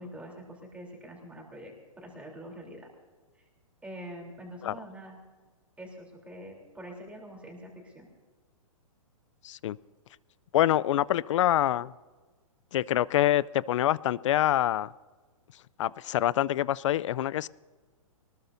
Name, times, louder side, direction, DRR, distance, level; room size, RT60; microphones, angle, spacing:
voice 1, 0.0-2.9 3.4-3.5 3.8-5.2 5.8-8.1, equal, 5° right, 0 dB, 3.3 m, -45 dB
voice 2, 9.4-9.8 10.5-11.9 12.7-14.9 15.8-17.5, left 12 dB, 60° left, 22 dB, 0.4 m, -25 dB
22.5 x 20.0 x 2.7 m, 1.4 s
hypercardioid pair, 135°, 18 cm